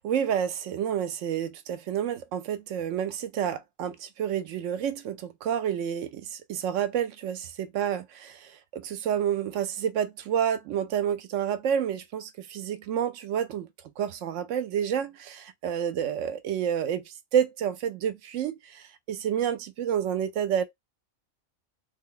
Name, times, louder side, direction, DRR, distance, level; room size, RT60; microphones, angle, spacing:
voice 1, 0.0-13.7 14.0-20.6, right 9 dB, 70° right, 0.9 m, -29 dB
3.4 x 2.3 x 3.8 m
omnidirectional pair, 1.4 m